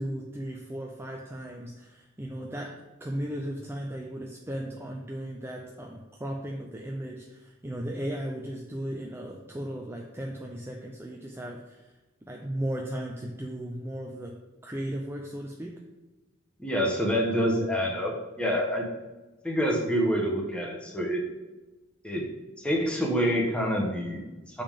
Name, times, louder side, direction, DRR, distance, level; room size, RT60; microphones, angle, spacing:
voice 1, 0.0-11.9 12.3-14.4 14.6-15.7, right 1 dB, 10° right, 0 dB, 0.5 m, -36 dB
voice 2, 16.6-18.9 19.4-21.2 22.0-22.3 22.6-24.6, equal, 5° left, -1 dB, 1.1 m, -27 dB
7.0 x 5.3 x 3.6 m, 1.1 s
head